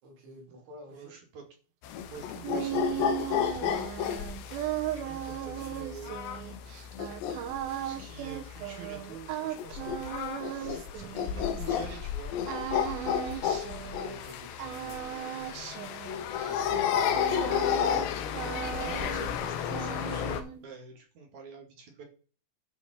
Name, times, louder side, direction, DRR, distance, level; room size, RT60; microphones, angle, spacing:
voice 1, 0.0-1.1 13.2-15.6 16.5-17.4 18.6-19.0, equal, 70° right, -1 dB, 5.5 m, -51 dB
voice 2, 0.9-1.4 2.0-3.9 4.9-6.3 7.7-12.3 18.5-22.0, right 6 dB, 50° right, 3 dB, 2.8 m, -47 dB
sound 1, 1.8-20.4, left 9 dB, 75° left, 3.0 m, -32 dB
sound 2, 2.1-12.0 12.5-14.3 14.6-18.1 18.3-19.4 19.7-20.6, right 12 dB, 90° right, 2.1 m, -37 dB
11.5 x 5.3 x 5.0 m, 0.38 s
omnidirectional pair, 5.5 m